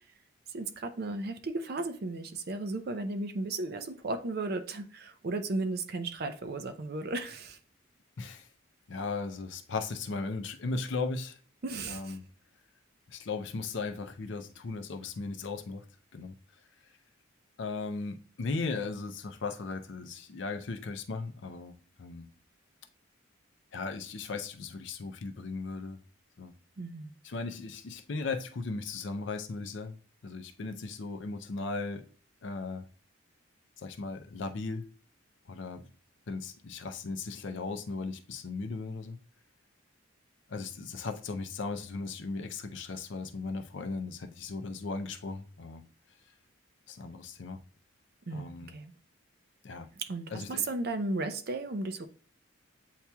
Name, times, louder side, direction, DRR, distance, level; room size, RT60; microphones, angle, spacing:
voice 1, 0.5-7.6 11.6-12.2 26.8-27.1 48.3-48.9 50.0-52.1, right 2 dB, 50° right, 0.5 m, -35 dB
voice 2, 8.2-8.5 8.9-11.4 11.9-12.2 13.1-15.8 16.1-16.3 17.6-22.3 23.7-26.0 26.4-26.5 27.2-30.0 30.2-32.0 32.4-32.8 33.8-34.8 35.5-35.9 36.3-39.2 40.5-45.8 46.9-47.6 48.3-48.7 49.6-49.9 50.3-50.7, left 3 dB, 60° left, 0.5 m, -37 dB
8.1 x 2.9 x 2.2 m
head